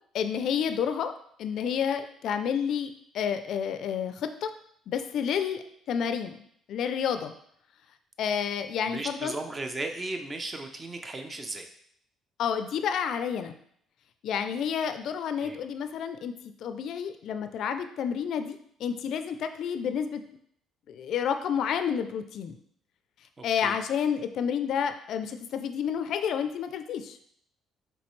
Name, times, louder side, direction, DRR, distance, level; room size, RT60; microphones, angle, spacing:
voice 1, 0.1-1.1 1.4-4.5 4.9-7.3 8.2-9.4 12.4-13.6 14.2-16.3 16.6-20.2 20.9-22.6 23.4-27.2, left 7 dB, 65° left, 9 dB, 0.4 m, -30 dB
voice 2, 8.9-11.7 15.4-15.6 23.4-23.8, right 2 dB, 25° right, 5 dB, 0.6 m, -36 dB
5.1 x 3.1 x 3.1 m, 0.67 s
cardioid pair, 95°, 0 cm